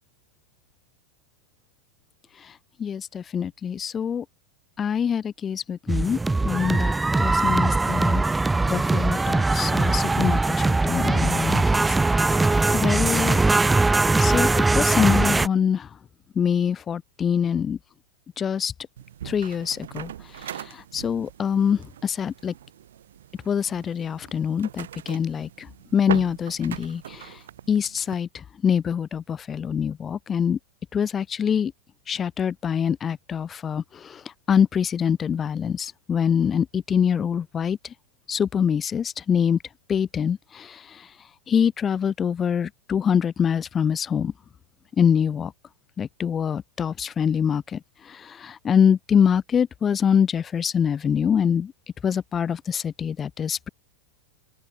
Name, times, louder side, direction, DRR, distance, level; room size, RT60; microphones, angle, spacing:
voice 1, 2.8-4.2 4.8-6.2 6.4-8.2 8.6-13.4 14.2-14.5 14.7-15.9 16.4-17.8 18.4-18.7 19.2-20.1 20.9-22.5 23.5-25.7 25.9-27.3 27.7-28.3 28.6-30.6 30.9-31.7 32.1-34.2 34.5-37.8 38.3-39.6 39.9-40.8 41.5-44.3 45.0-45.5 46.0-47.8 48.2-51.7 52.0-53.7, left 7 dB, 20° left, 0.9 m, -24 dB
sound 1, 5.9-15.5, right 3 dB, 10° right, 0.3 m, -21 dB
sound 2, 19.0-28.2, right 11 dB, 60° right, 4.6 m, -40 dB
figure-of-eight pair, 90°, 0 cm